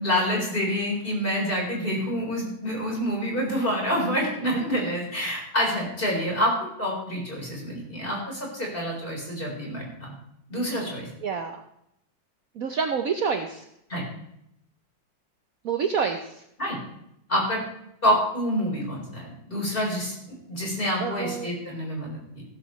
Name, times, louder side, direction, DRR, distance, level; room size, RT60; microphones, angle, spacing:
voice 1, 0.0-10.1 10.5-11.1 13.9-14.0 16.6-16.8 17.3-17.6 18.0-22.4, equal, 30° left, -2 dB, 4.6 m, -27 dB
voice 2, 11.2-11.6 12.6-13.6 15.6-16.2 21.0-21.5, right 6 dB, 55° right, 5 dB, 1.1 m, -27 dB
15.0 x 14.0 x 3.2 m, 0.77 s
omnidirectional pair, 2.0 m